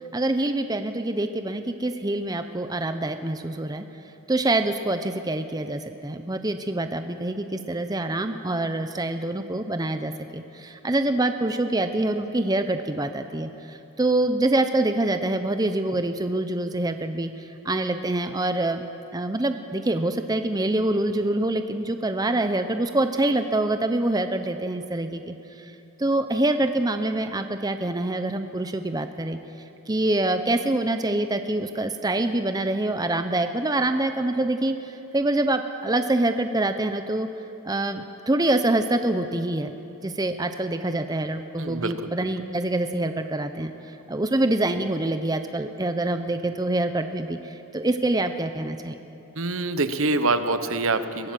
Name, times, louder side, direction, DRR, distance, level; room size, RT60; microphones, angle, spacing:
voice 1, 0.1-3.9 4.3-18.8 19.1-29.4 29.9-37.3 37.6-39.7 40.0-49.0, right 2 dB, 20° right, 8 dB, 0.7 m, -25 dB
voice 2, 41.6-42.1 49.4-51.3, right 2 dB, 70° right, 10 dB, 1.0 m, -25 dB
22.0 x 16.0 x 7.6 m, 2.9 s
head